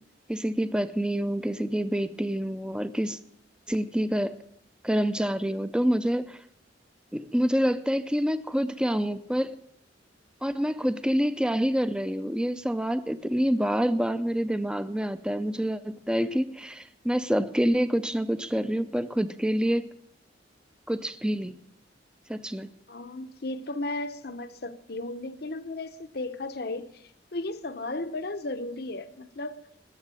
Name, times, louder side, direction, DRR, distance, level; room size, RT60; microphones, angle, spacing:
voice 1, 0.3-3.2 3.7-4.4 4.8-6.4 7.1-9.6 10.4-19.9 20.9-21.6 22.3-22.7, equal, 5° right, 0.6 m, -27 dB
voice 2, 22.9-29.6, left 2 dB, 55° left, 0.9 m, -35 dB
19.5 x 7.3 x 9.1 m
head